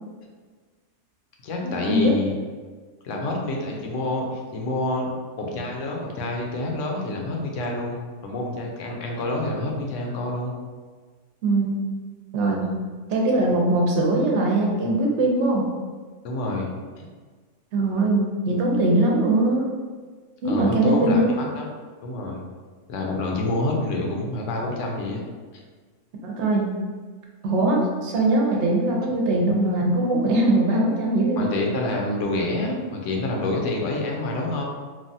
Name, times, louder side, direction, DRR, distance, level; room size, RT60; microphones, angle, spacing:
voice 1, 1.4-2.3 3.0-5.1 5.4-10.5 12.6-12.7 16.2-17.0 20.4-21.7 22.0-22.4 22.9-25.2 25.5-25.6 31.4-34.6, left 2 dB, 80° left, 0 dB, 0.9 m, -27 dB
voice 2, 11.4-11.8 12.3-12.7 13.1-15.7 17.7-19.6 20.4-21.3 26.2-26.7 27.4-31.5, right 2 dB, 70° right, -1 dB, 0.8 m, -21 dB
3.2 x 2.2 x 2.6 m, 1.5 s
omnidirectional pair, 1.3 m